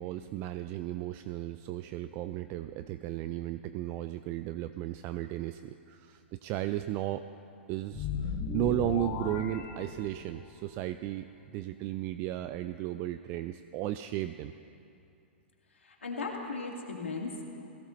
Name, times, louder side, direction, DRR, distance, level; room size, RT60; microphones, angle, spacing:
voice 1, 0.0-7.2 7.7-11.3 11.5-14.5, right 14 dB, 35° right, 11 dB, 0.3 m, -35 dB
sound 1, 7.9-10.5, left 6 dB, 30° left, 1.3 m, -36 dB
voice 2, 15.8-17.4, left 3 dB, 90° left, -1 dB, 2.1 m, -37 dB
17.5 x 15.5 x 3.1 m, 2.7 s
hypercardioid pair, 125°, 6 cm